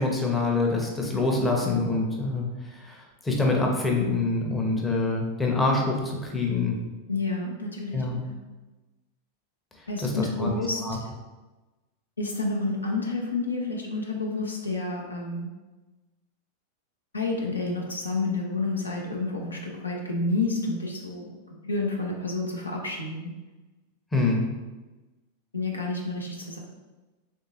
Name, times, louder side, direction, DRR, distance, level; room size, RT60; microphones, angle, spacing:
voice 1, 0.0-6.8 7.9-8.2 10.0-10.5 10.8-11.0 24.1-24.5, left 3 dB, 10° left, -1 dB, 0.7 m, -25 dB
voice 2, 7.1-8.4 9.9-11.0 12.2-15.5 17.1-23.3 25.5-26.6, left 3 dB, 80° left, 0 dB, 0.6 m, -30 dB
3.6 x 3.3 x 2.8 m, 1.2 s
figure-of-eight pair, 90°, 0 cm